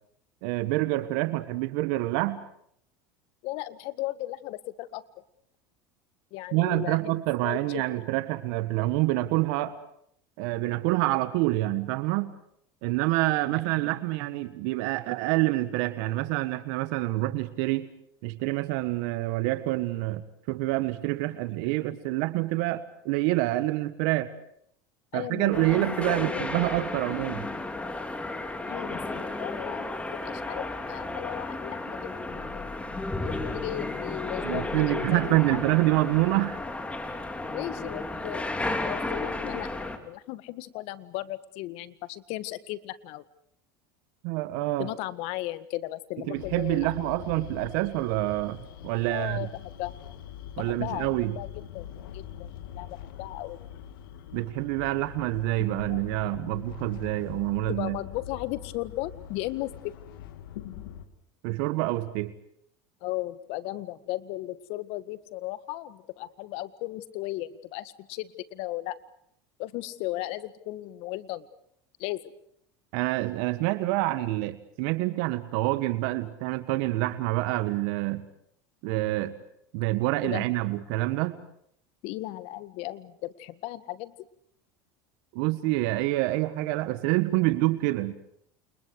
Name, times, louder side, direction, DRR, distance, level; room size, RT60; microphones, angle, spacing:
voice 1, 0.4-2.4 6.5-9.8 10.4-12.3 12.8-17.9 18.2-24.3 25.1-27.5 34.4-36.6 44.2-44.9 46.3-49.5 50.6-51.4 54.3-58.0 61.4-62.3 72.9-78.2 78.8-79.3 79.7-81.4 85.3-88.1, right 18 dB, 70° right, 12 dB, 1.5 m, -27 dB
voice 2, 3.4-5.0 6.3-7.2 7.4-8.0 25.1-26.5 28.7-32.7 33.2-35.6 37.5-38.5 38.8-43.2 44.8-47.1 49.1-49.9 50.6-51.1 51.4-51.5 51.7-51.9 52.1-53.6 55.9-56.0 57.7-59.9 63.0-69.0 69.6-71.5 72.0-72.3 80.2-80.4 82.0-84.1, left 17 dB, 65° left, 14 dB, 1.8 m, -36 dB
sound 1, 25.5-40.0, left 2 dB, 10° left, 3.5 m, -33 dB
sound 2, 46.3-61.1, left 10 dB, 85° left, 2.6 m, -43 dB
29.0 x 29.0 x 4.8 m, 0.70 s
supercardioid pair, 115°, 11 cm